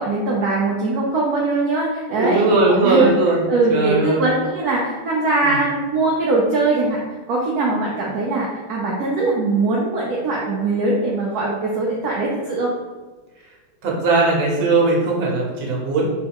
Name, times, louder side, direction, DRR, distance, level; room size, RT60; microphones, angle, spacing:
voice 1, 0.0-3.1 3.5-7.0 7.3-12.7, right 2 dB, 70° right, -4 dB, 1.0 m, -21 dB
voice 2, 2.1-3.4 3.7-4.2 5.4-5.5 13.8-16.1, right 3 dB, 85° right, -2 dB, 1.6 m, -18 dB
3.4 x 3.1 x 3.4 m, 1.3 s
omnidirectional pair, 2.1 m